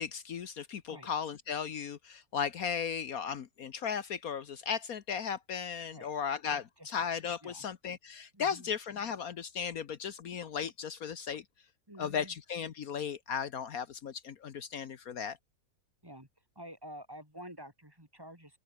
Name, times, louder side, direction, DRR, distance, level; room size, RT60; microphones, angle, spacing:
voice 1, 0.0-11.4 12.0-15.4, left 7 dB, 70° left, 1.5 m, -36 dB
voice 2, 6.5-6.9 7.4-7.7 8.3-8.7 11.9-12.4 16.0-16.3 16.6-18.6, equal, 15° right, 5.5 m, -49 dB
open air
omnidirectional pair, 1.6 m